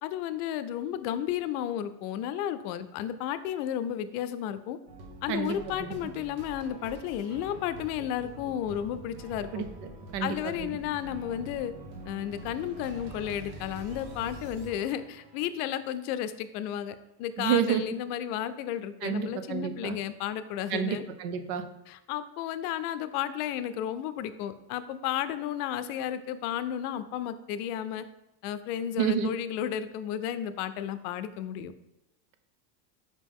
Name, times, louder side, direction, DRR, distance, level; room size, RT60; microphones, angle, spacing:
voice 1, 0.0-4.8 5.2-9.7 10.2-11.7 12.1-21.0 21.9-28.0 28.4-31.7, left 10 dB, 80° left, 12 dB, 0.6 m, -33 dB
sound 1, 4.9-16.0, right 1 dB, 50° right, 1.3 m, -45 dB
voice 2, 5.3-6.0 9.5-9.7 10.1-10.8 17.4-17.8 19.0-20.0 20.7-21.6 29.0-29.3, right 8 dB, 80° right, 9 dB, 0.8 m, -29 dB
5.3 x 5.2 x 3.5 m, 0.87 s
cardioid pair, 165°, 46 cm